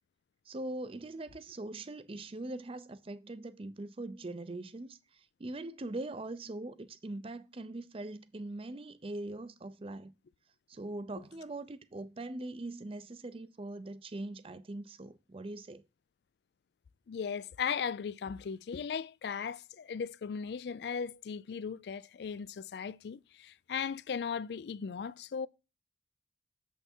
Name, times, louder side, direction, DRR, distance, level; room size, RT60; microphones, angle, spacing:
voice 1, 0.5-5.0 5.4-10.1 10.7-15.8, right 2 dB, 30° right, 0.5 m, -41 dB
voice 2, 17.1-25.5, left 6 dB, 65° left, 0.4 m, -37 dB
7.1 x 5.6 x 4.4 m
head